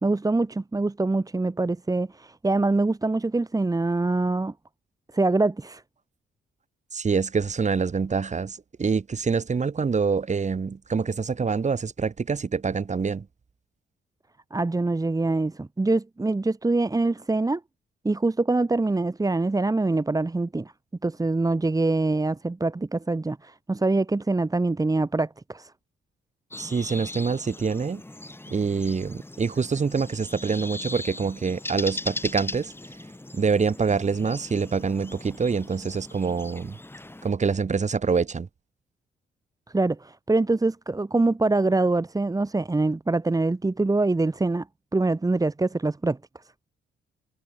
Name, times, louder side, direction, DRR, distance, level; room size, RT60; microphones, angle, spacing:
voice 1, 0.0-4.5 5.1-5.8 14.5-17.6 18.0-20.7 21.0-25.7 39.7-44.7 44.9-46.4, right 2 dB, 15° right, 2.7 m, -24 dB
voice 2, 6.9-13.3 26.6-28.0 28.5-32.7 33.3-36.8 37.2-38.5, right 5 dB, 35° right, 6.9 m, -25 dB
sound 1, 26.5-37.3, left 1 dB, 10° left, 6.1 m, -39 dB
cardioid pair, 90°, 20 cm